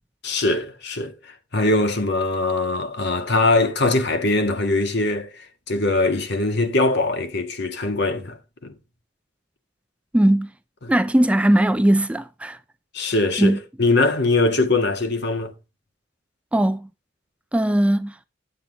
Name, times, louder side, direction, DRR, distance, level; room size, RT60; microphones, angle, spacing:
voice 1, 0.2-1.1 1.5-8.7 10.8-10.9 12.9-15.5, left 2 dB, 60° left, 1.8 m, -22 dB
voice 2, 10.1-10.5 10.9-12.6 13.4-13.6 16.5-16.9 17.5-18.1, right 1 dB, 5° right, 0.4 m, -19 dB
9.8 x 8.6 x 4.0 m
head